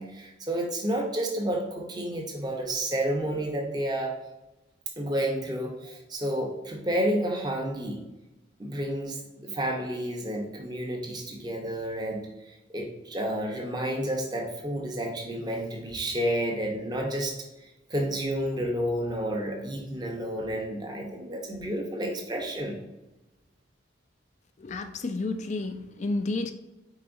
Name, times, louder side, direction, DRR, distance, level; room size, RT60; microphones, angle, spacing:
voice 1, 0.0-4.1 5.0-8.0 8.6-17.3 17.6-22.7, right 1 dB, 20° right, 0 dB, 0.8 m, -30 dB
voice 2, 24.6-26.5, left 2 dB, 40° left, 8 dB, 0.3 m, -31 dB
4.7 x 3.8 x 2.6 m, 0.99 s
head